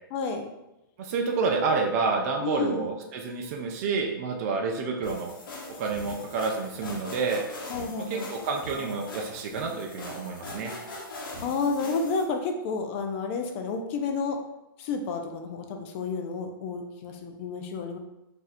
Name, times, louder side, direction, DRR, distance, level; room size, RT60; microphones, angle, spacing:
voice 1, 0.1-0.5 2.4-2.9 7.7-8.3 11.4-14.4 14.8-18.0, left 4 dB, 35° left, 4 dB, 0.4 m, -30 dB
voice 2, 1.0-5.3 5.8-7.4 8.1-10.7, right 4 dB, 45° right, 1 dB, 0.5 m, -29 dB
sound 1, 5.0-12.2, left 2 dB, 70° left, 0.9 m, -41 dB
2.6 x 2.3 x 4.1 m, 0.91 s
hypercardioid pair, 150°, 12 cm